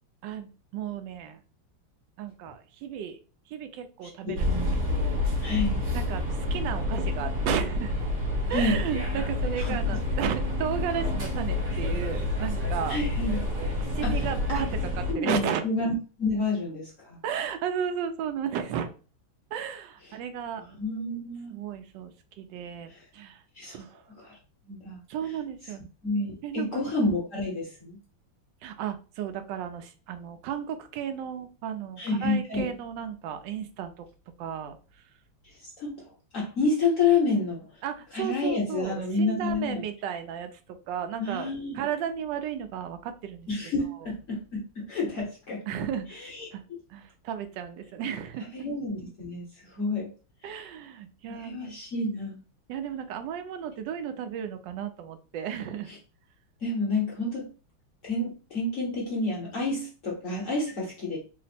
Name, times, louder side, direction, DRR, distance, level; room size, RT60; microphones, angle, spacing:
voice 1, 0.2-1.4 2.2-3.2 3.5-4.6 4.9-5.2 5.9-7.9 8.5-13.0 13.8-15.6 17.2-18.9 19.5-20.6 21.5-23.4 23.7-24.0 25.1-25.9 26.4-26.9 28.6-34.1 34.4-34.8 37.8-43.5 45.7-46.2 46.5-46.6 46.9-48.7 50.4-51.8 52.7-55.9, right 8 dB, 75° right, 7 dB, 1.1 m, -34 dB
sound 1, 4.4-15.1, left 2 dB, 50° right, 1.3 m, -28 dB
voice 2, 5.4-5.8 8.5-8.8 9.6-9.7 12.9-13.4 14.0-14.2 14.5-14.6 15.1-15.9 16.2-17.2 20.7-21.5 23.6-23.8 24.2-24.4 24.7-25.0 26.0-28.0 32.0-32.7 35.8-35.9 36.3-37.6 38.1-39.8 41.2-41.8 43.5-45.6 46.3-46.8 48.5-50.1 50.5-50.6 51.3-52.4 56.6-57.5 58.0-61.2, left 3 dB, 50° left, -3 dB, 0.9 m, -29 dB
3.5 x 2.0 x 4.1 m, 0.35 s
omnidirectional pair, 2.4 m